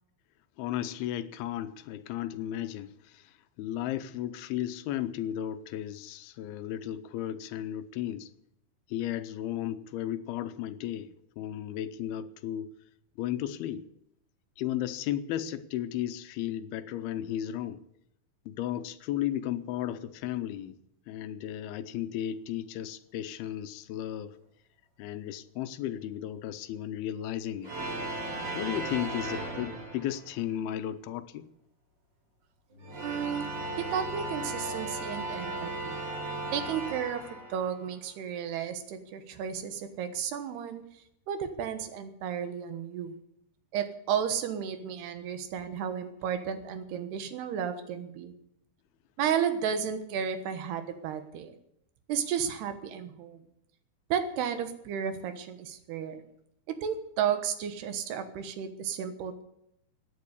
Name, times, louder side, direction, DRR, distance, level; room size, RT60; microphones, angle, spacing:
voice 1, 0.6-8.3 8.9-12.7 13.2-13.9 14.6-17.8 18.5-20.8 21.1-24.4 25.0-27.7 28.5-31.5, left 11 dB, 80° left, 2.6 m, -34 dB
sound 1, 27.6-30.4 32.7-37.9, right 2 dB, 30° right, 3.8 m, -36 dB
voice 2, 33.0-33.5 33.8-36.0 36.5-37.2 37.5-40.8 41.3-43.2 43.7-48.3 49.2-51.6 52.1-53.5 54.1-56.2 56.8-59.4, right 8 dB, 90° right, 3.4 m, -33 dB
15.5 x 9.5 x 8.3 m
omnidirectional pair, 4.5 m